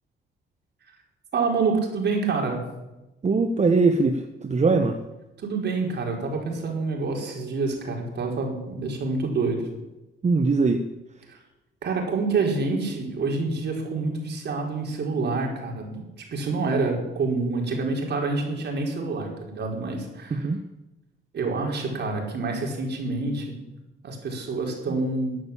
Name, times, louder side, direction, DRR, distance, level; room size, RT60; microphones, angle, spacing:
voice 1, 1.3-2.6 5.4-9.6 11.3-11.4 11.8-16.1 16.3-20.5 21.3-23.6 24.0-25.4, right 3 dB, 60° right, 1 dB, 4.8 m, -27 dB
voice 2, 3.2-5.0 10.2-10.8 20.3-20.6, right 3 dB, 35° right, 6 dB, 1.2 m, -21 dB
14.5 x 9.3 x 8.7 m, 0.99 s
cardioid pair, 90°, 20 cm